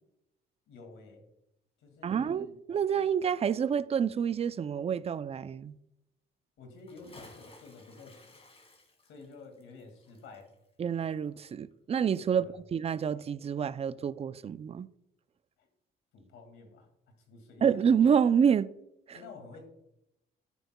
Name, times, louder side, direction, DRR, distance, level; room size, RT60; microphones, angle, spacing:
voice 1, 0.7-1.2 1.8-2.6 6.6-8.4 9.0-10.5 12.3-12.6 15.6-15.7 16.1-16.9 17.3-17.6 19.1-19.6, left 3 dB, 85° left, 2.1 m, -50 dB
voice 2, 2.0-5.7 10.8-14.9 17.6-18.7 19.1-19.2, right 7 dB, 30° right, 0.4 m, -28 dB
Bathtub (filling or washing) / Splash splatter, 6.7-11.7 12.0-12.1, left 2 dB, 30° left, 2.1 m, -57 dB
10.0 x 9.2 x 2.2 m
cardioid pair, 90°, 20 cm